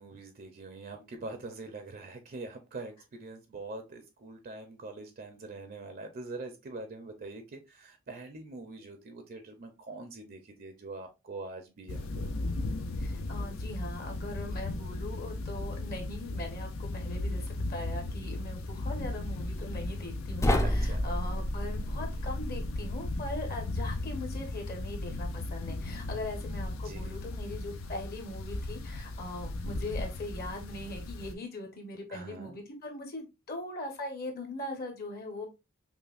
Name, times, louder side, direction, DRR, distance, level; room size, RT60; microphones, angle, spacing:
voice 1, 0.0-12.3 20.6-21.1 26.8-27.0 32.1-32.6, right 3 dB, 45° right, 0.5 m, -44 dB
sound 1, 11.9-31.3, left 2 dB, 90° left, 0.5 m, -36 dB
voice 2, 13.0-35.5, left 2 dB, 50° left, 1.0 m, -40 dB
sound 2, 20.4-23.5, equal, 15° left, 0.4 m, -31 dB
5.5 x 2.2 x 2.4 m
head